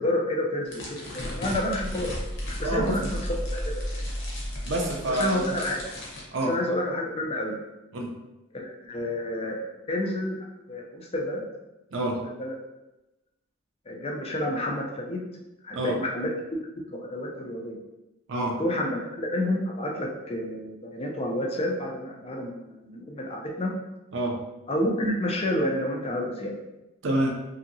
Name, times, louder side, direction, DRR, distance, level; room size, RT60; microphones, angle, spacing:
voice 1, 0.0-2.2 2.5-3.6 3.9-4.0 5.1-5.8 6.5-7.6 8.5-11.4 12.4-12.5 13.9-15.2 15.6-16.3 16.9-17.8 18.6-23.7 24.7-26.5, left 1 dB, 30° left, 0 dB, 0.4 m, -29 dB
sound 1, 0.7-6.2, left 1 dB, 55° left, 0.8 m, -40 dB
sound 2, 1.2-6.0, equal, 10° right, 0.8 m, -34 dB
voice 2, 2.6-3.1 4.7-5.5 6.3-6.6 7.9-8.1 11.9-12.2 15.7-16.0 18.3-18.6 24.1-24.4 27.0-27.4, right 1 dB, 60° right, 1 dB, 0.5 m, -27 dB
2.7 x 2.7 x 2.6 m, 0.99 s
head